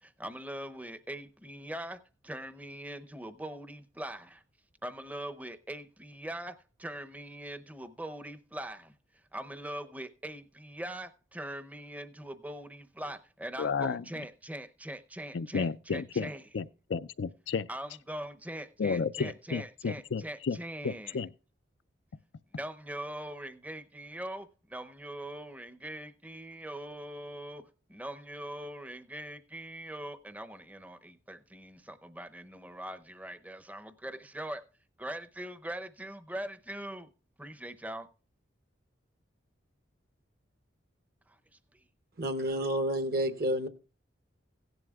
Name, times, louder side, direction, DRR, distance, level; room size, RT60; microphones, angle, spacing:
voice 1, 0.0-4.4 4.8-8.9 9.3-16.4 17.7-21.2 22.5-34.6 35.0-37.1 37.4-38.1 41.3-41.4 41.7-41.9, right 1 dB, 10° right, 0.7 m, -42 dB
voice 2, 13.6-14.0 15.3-17.7 18.8-20.6 20.8-21.3, left 5 dB, 70° left, 0.4 m, -32 dB
voice 3, 42.2-43.7, right 1 dB, 50° right, 1.0 m, -30 dB
16.5 x 11.0 x 2.4 m
head